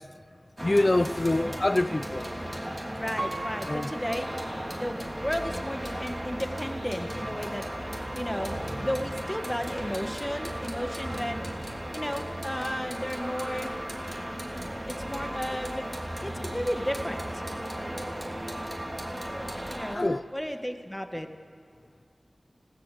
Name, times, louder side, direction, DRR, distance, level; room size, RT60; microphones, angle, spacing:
voice 1, 0.6-2.3 3.7-3.9 20.0-20.2, left 2 dB, 40° left, 0.6 m, -25 dB
sound 1, 0.6-20.0, right 1 dB, 10° right, 3.0 m, -35 dB
voice 2, 3.0-4.3 4.8-7.6 7.9-13.7 14.9-15.8 16.2-17.3 19.7-20.1 20.3-21.3, equal, 10° left, 1.8 m, -34 dB
Piano, 3.2-5.1 5.7-5.8, right 2 dB, 50° right, 2.7 m, -39 dB
25.5 x 18.0 x 6.9 m
wide cardioid pair, 55°, 0 cm